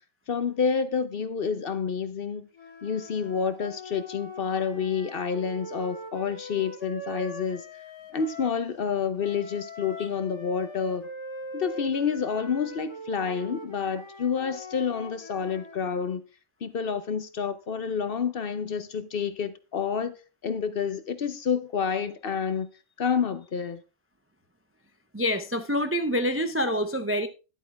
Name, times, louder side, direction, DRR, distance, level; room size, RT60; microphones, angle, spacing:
voice 1, 0.3-2.5 2.8-7.6 8.1-11.1 11.5-16.2 16.6-20.2 20.4-22.7 23.0-23.8, left 6 dB, 50° left, 0.8 m, -29 dB
sound 1, 2.5-8.6 9.2-15.8, left 1 dB, 20° left, 1.8 m, -42 dB
voice 2, 25.1-27.3, equal, 20° right, 0.3 m, -26 dB
11.0 x 8.3 x 3.4 m
omnidirectional pair, 1.4 m